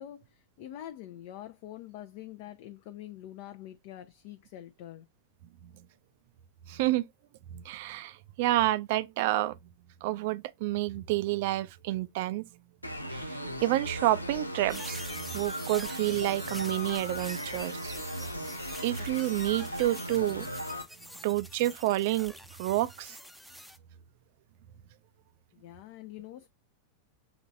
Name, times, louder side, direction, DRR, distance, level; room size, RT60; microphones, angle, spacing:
voice 1, 0.0-5.1 25.5-26.5, left 12 dB, 50° left, 0.5 m, -45 dB
voice 2, 6.7-7.1 7.5-9.6 10.0-12.4 13.1-18.0 18.8-20.5 21.2-23.2, right 16 dB, 50° right, 0.4 m, -29 dB
sound 1, 12.8-20.8, equal, 85° left, 0.7 m, -37 dB
sound 2, 14.7-23.8, equal, ahead, 0.5 m, -46 dB
6.0 x 3.0 x 2.6 m
figure-of-eight pair, 90°, 0 cm